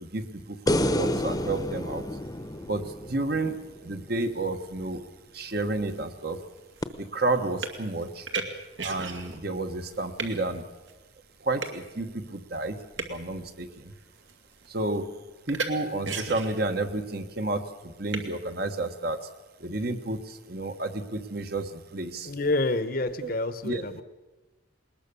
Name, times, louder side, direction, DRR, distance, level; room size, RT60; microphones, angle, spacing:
voice 1, 0.0-2.1 2.6-5.0 5.3-6.4 7.0-8.3 8.8-10.7 11.4-13.9 14.7-15.2 15.5-19.3 19.6-22.3 23.2-23.3 23.6-23.8, right 2 dB, 50° right, 7 dB, 1.3 m, -31 dB
sound 1, 0.7-4.0 6.8-6.9, left 1 dB, 20° left, 0.9 m, -29 dB
sound 2, 5.4-5.5 5.9-9.5 9.8-10.4 10.9-11.0 11.6-11.8 12.7-13.3 13.9-14.3 14.6-15.0 15.5-15.7 16.0-16.8 18.1-18.2, right 4 dB, 80° right, 2.3 m, -35 dB
voice 2, 22.2-24.0, left 2 dB, 45° left, 12 dB, 1.0 m, -28 dB
21.0 x 20.0 x 6.9 m, 1.2 s
head